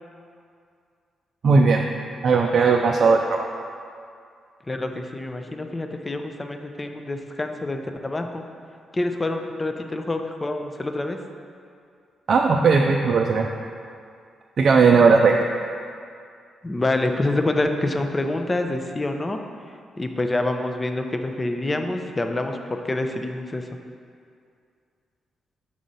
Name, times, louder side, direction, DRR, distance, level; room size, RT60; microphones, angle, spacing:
voice 1, 1.4-1.8 2.2-3.5 12.3-13.5 14.6-15.4, right 4 dB, 60° right, 1 dB, 0.4 m, -17 dB
voice 2, 4.7-8.4 8.9-11.2 16.6-19.4 20.0-23.6, left 2 dB, 25° left, 5 dB, 0.5 m, -26 dB
6.2 x 3.8 x 5.4 m, 2.3 s
supercardioid pair, 60°, 0 cm